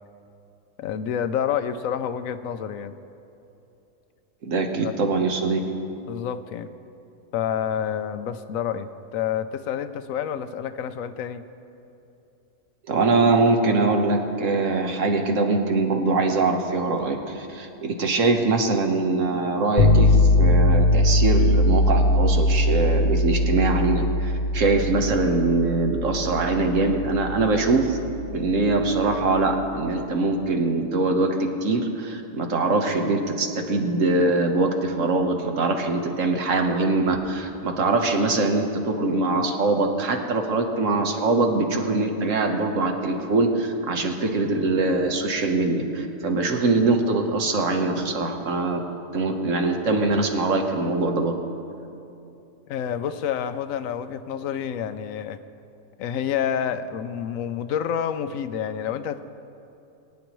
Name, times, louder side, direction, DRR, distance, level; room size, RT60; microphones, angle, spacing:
voice 1, 0.8-3.0 4.8-4.9 6.1-6.7 7.3-11.4 52.7-55.4 56.0-59.2, left 8 dB, 80° left, 11 dB, 1.0 m, -28 dB
voice 2, 4.4-5.6 12.9-28.0 28.3-48.8 49.1-51.3, right 3 dB, 70° right, 4 dB, 1.4 m, -23 dB
sound 1, 19.8-29.7, left 1 dB, 55° left, 0.8 m, -21 dB
22.5 x 9.5 x 3.1 m, 2.8 s
omnidirectional pair, 1.4 m